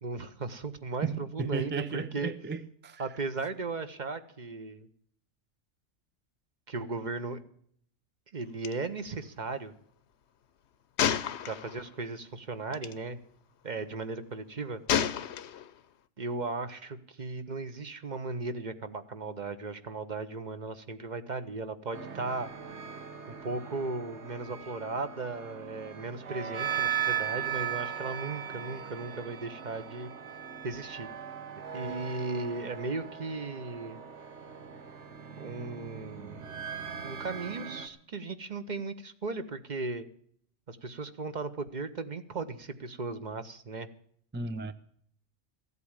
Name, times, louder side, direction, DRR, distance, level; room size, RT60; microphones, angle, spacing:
voice 1, 0.0-2.3 3.0-4.9 6.7-7.4 8.3-9.7 11.5-13.2 13.6-14.8 16.2-22.5 23.3-30.1 30.6-31.1 31.7-34.0 35.4-36.6 37.0-40.1 40.7-43.9, right 3 dB, 40° right, 10 dB, 1.0 m, -36 dB
voice 2, 1.0-3.0 44.3-44.7, right 4 dB, 15° right, 12 dB, 0.4 m, -34 dB
Gunshot gunfire, 8.6-8.7 9.0-9.2 11.0-12.0 12.7-12.9 14.9-15.8, left 9 dB, 70° left, 1.0 m, -30 dB
sound 1, 21.9-37.9, right 8 dB, 70° right, 1.4 m, -38 dB
15.0 x 8.3 x 8.8 m, 0.63 s
omnidirectional pair, 1.2 m